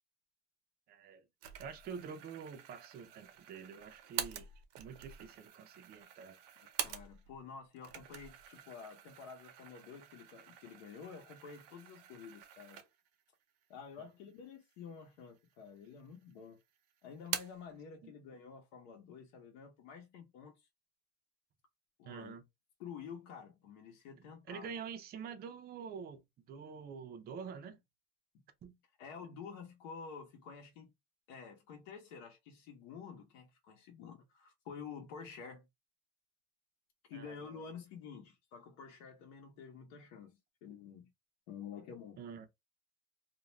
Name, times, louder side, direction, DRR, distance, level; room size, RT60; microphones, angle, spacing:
voice 1, 0.9-1.3 1.6-4.5 4.8-6.4 18.0-18.1 22.0-22.4 24.2-26.2 26.5-27.8 28.6-28.8 37.1-37.6 42.2-42.5, right 6 dB, 30° right, 0.4 m, -47 dB
sound 1, 1.4-7.4 7.7-13.2 13.6-13.7 14.6-15.2 15.5-16.3 16.6-17.7, right 11 dB, 75° right, 0.7 m, -46 dB
voice 2, 6.8-12.8 13.7-16.6 17.0-20.7 22.0-22.4 22.8-24.8 29.0-30.9 31.3-35.7 37.1-41.1 41.5-42.2, left 6 dB, 80° left, 0.9 m, -50 dB
2.4 x 2.1 x 3.0 m
cardioid pair, 155°, 36 cm